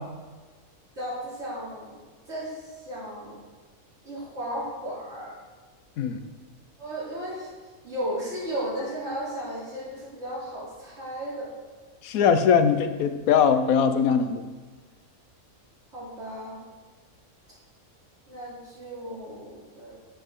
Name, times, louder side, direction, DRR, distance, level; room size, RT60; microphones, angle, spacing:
voice 1, 1.0-1.9 2.3-2.6 2.8-3.4 4.0-5.3 6.8-7.5 7.8-11.5 15.9-16.6 18.3-20.0, right 1 dB, 50° right, -7 dB, 3.6 m, -34 dB
voice 2, 12.0-14.5, left 7 dB, 80° left, 9 dB, 1.1 m, -21 dB
10.0 x 7.9 x 3.7 m, 1.4 s
omnidirectional pair, 1.5 m